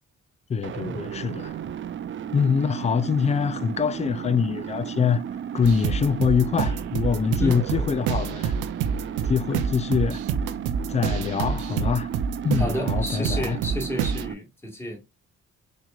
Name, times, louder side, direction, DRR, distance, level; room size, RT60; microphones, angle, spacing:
voice 1, 0.5-1.6 2.3-5.2 5.5-8.5 9.2-10.2 10.9-12.1 12.4-13.6, left 6 dB, 25° left, 0.3 m, -24 dB
sound 1, 0.6-14.3, right 9 dB, 40° right, 0.5 m, -34 dB
sound 2, 5.6-14.2, right 6 dB, 85° right, 0.6 m, -28 dB
voice 2, 7.4-7.8 12.5-15.0, equal, 10° left, 1.6 m, -31 dB
4.3 x 3.1 x 2.4 m
cardioid pair, 90°, 30 cm